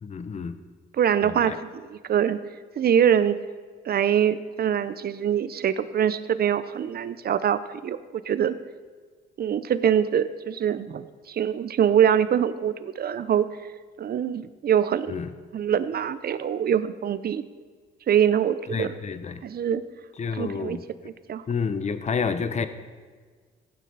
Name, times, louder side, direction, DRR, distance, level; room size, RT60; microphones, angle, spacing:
voice 1, 0.0-0.6 1.2-1.6 15.1-15.3 18.7-19.4 20.2-20.8 21.5-22.7, left 5 dB, 35° left, 11 dB, 0.9 m, -29 dB
voice 2, 1.0-2.4 2.8-3.4 3.9-8.6 9.4-13.5 14.0-15.1 15.5-17.4 18.1-18.9 19.4-19.8 20.3-20.8 21.0-21.4, right 9 dB, 50° right, 13 dB, 0.7 m, -24 dB
15.5 x 9.4 x 4.1 m, 1.6 s
cardioid pair, 90°, 20 cm